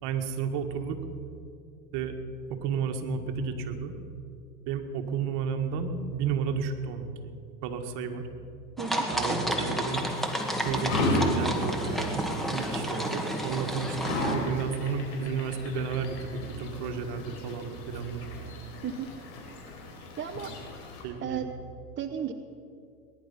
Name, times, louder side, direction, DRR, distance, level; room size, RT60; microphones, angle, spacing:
voice 1, 0.0-1.0 1.9-2.2 2.6-4.0 4.7-7.4 7.6-8.3 9.1-10.1 10.6-18.3 21.0-21.5, right 6 dB, 55° right, 5 dB, 1.8 m, -32 dB
sound 1, 8.8-14.3, equal, ahead, 1.8 m, -31 dB
sound 2, 9.9-21.0, left 2 dB, 65° left, 4.2 m, -35 dB
voice 2, 20.2-20.5 21.2-21.5 22.0-22.3, right 8 dB, 25° right, 6 dB, 0.8 m, -33 dB
20.0 x 11.0 x 5.6 m, 2.6 s
hypercardioid pair, 90°, 48 cm